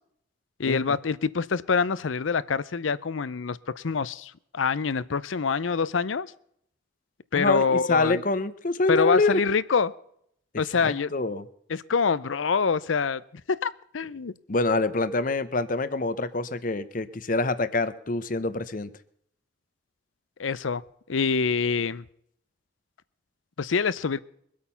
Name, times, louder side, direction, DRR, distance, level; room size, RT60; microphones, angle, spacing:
voice 1, 0.6-6.3 7.3-8.2 8.9-9.9 10.6-11.1 11.7-13.2 13.5-14.3 20.4-20.8 21.1-22.0 23.6-24.2, left 5 dB, 85° left, 18 dB, 0.6 m, -25 dB
voice 2, 7.3-9.4 10.8-11.4 14.5-18.9, left 2 dB, 45° left, 14 dB, 0.8 m, -26 dB
22.5 x 8.6 x 5.7 m, 0.70 s
head